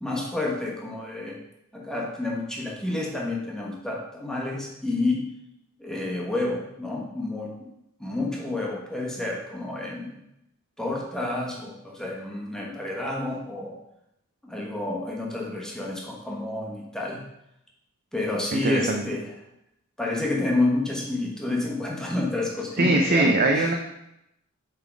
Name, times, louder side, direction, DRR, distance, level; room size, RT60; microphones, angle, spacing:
voice 1, 0.0-1.4 1.7-5.2 5.8-7.7 8.0-10.2 10.8-13.8 14.4-17.2 18.1-19.3 20.0-23.8, left 2 dB, 5° left, -2 dB, 1.2 m, -29 dB
voice 2, 18.5-19.1 22.8-23.7, right 2 dB, 45° right, 2 dB, 0.6 m, -22 dB
7.7 x 3.8 x 4.7 m, 0.84 s
head